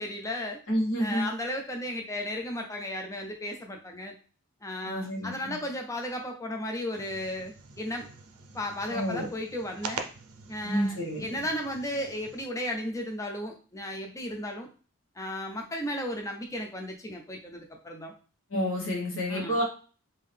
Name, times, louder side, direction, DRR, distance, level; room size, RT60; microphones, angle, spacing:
voice 1, 0.0-0.6 1.0-4.1 4.6-8.1 8.5-10.0 10.5-14.7 15.2-18.1 19.3-19.6, left 1 dB, 15° left, 3 dB, 0.5 m, -35 dB
voice 2, 0.7-1.3 4.8-5.6 8.9-9.2 10.6-11.2 18.5-19.6, equal, 60° left, -2 dB, 1.4 m, -29 dB
sound 1, 6.9-12.5, right 5 dB, 80° right, 0.6 m, -44 dB
3.7 x 2.7 x 3.4 m, 0.38 s
head